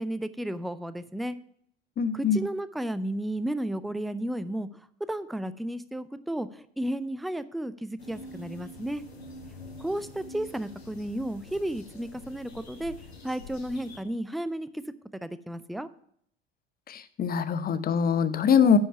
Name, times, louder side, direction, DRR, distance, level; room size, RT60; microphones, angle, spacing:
voice 1, 0.0-1.4 2.1-4.7 5.1-9.0 9.8-12.9 13.2-14.7 15.2-15.9, right 1 dB, ahead, 14 dB, 0.4 m, -33 dB
voice 2, 2.0-2.4 16.9-18.8, left 7 dB, 30° left, 13 dB, 0.8 m, -23 dB
sound 1, 8.0-14.0, left 2 dB, 90° left, 1.7 m, -46 dB
9.9 x 5.6 x 5.5 m, 0.67 s
figure-of-eight pair, 70°, 31 cm